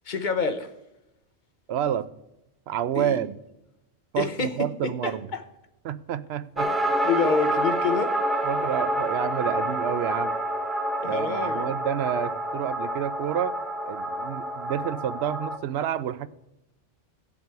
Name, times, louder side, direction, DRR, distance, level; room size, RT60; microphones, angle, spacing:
voice 1, 0.1-0.7 2.9-3.2 4.2-4.6 4.8-5.4 7.0-8.2 11.0-11.7, left 4 dB, 45° left, 0.9 m, -27 dB
voice 2, 1.7-2.1 2.7-3.4 4.1-5.3 5.8-6.7 8.4-10.4 11.0-13.6 13.9-16.3, right 10 dB, 70° right, 0.8 m, -29 dB
sound 1, 6.6-15.6, right 1 dB, ahead, 0.7 m, -28 dB
17.0 x 7.4 x 4.6 m
omnidirectional pair, 1.2 m